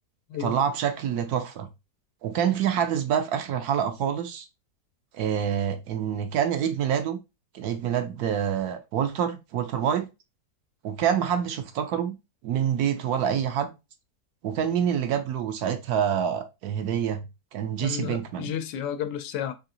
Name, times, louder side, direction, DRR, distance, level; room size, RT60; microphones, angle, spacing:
voice 1, 0.4-1.7 2.2-4.5 5.1-7.2 7.5-10.1 10.8-12.1 12.4-13.7 14.4-17.2 17.5-18.5, right 8 dB, 70° right, 1.1 m, -26 dB
voice 2, 17.8-19.5, left 9 dB, 90° left, 1.3 m, -32 dB
3.8 x 3.4 x 2.7 m
omnidirectional pair, 1.8 m